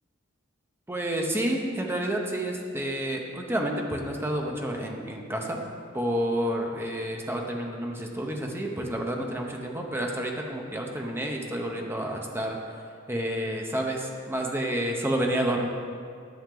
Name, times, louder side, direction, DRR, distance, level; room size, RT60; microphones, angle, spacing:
voice 1, 0.9-5.6 5.9-12.6 13.1-15.7, right 1 dB, 10° right, 1 dB, 0.8 m, -29 dB
10.0 x 6.2 x 3.8 m, 2.3 s
head